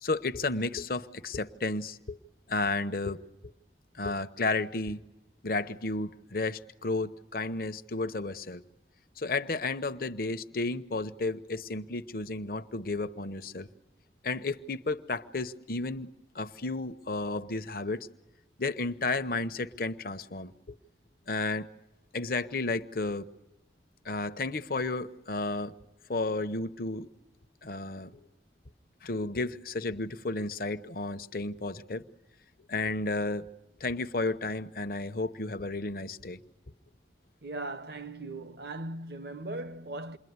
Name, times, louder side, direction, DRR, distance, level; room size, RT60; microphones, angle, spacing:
voice 1, 0.0-2.2 2.5-3.2 3.9-5.0 5.4-8.6 9.2-13.7 14.2-16.1 16.3-18.1 18.6-20.5 21.3-21.7 22.1-23.3 24.0-25.7 26.1-27.1 27.6-28.1 29.0-32.0 32.7-33.5 33.8-36.4, left 3 dB, 50° left, 0.9 m, -32 dB
voice 2, 37.4-40.2, right 2 dB, 60° right, 1.0 m, -38 dB
28.5 x 22.0 x 9.5 m
head